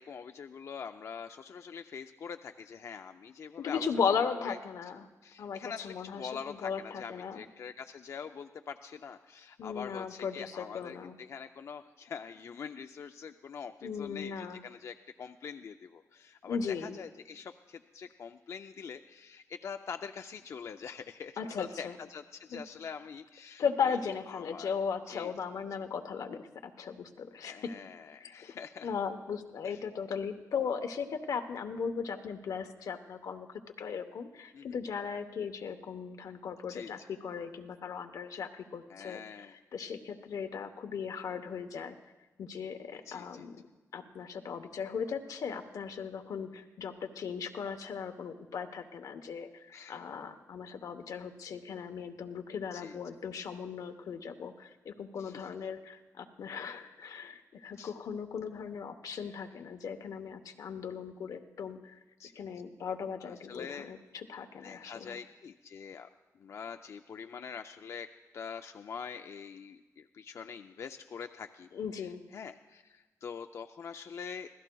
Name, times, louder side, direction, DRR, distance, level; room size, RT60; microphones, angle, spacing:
voice 1, 0.0-3.8 4.3-4.6 5.2-24.8 25.1-25.3 27.4-28.9 29.6-29.8 34.5-34.8 36.7-37.1 38.9-39.6 43.1-43.5 49.7-50.0 52.7-53.0 55.2-55.5 57.7-57.9 59.3-59.4 62.2-62.3 63.2-63.9 64.6-66.1 66.3-68.1 68.3-71.7 71.9-74.5, left 6 dB, 55° left, 6 dB, 0.4 m, -44 dB
voice 2, 3.6-5.1 5.4-5.6 5.8-6.2 6.5-7.4 9.6-11.2 13.8-14.6 16.5-17.0 21.4-21.9 22.5-22.6 23.6-27.7 28.2-39.5 39.7-42.0 42.4-43.6 43.9-62.0 62.4-65.2 71.7-72.2, left 6 dB, 85° left, 7 dB, 0.9 m, -37 dB
25.5 x 16.5 x 2.3 m, 1.2 s
wide cardioid pair, 150°, 6 cm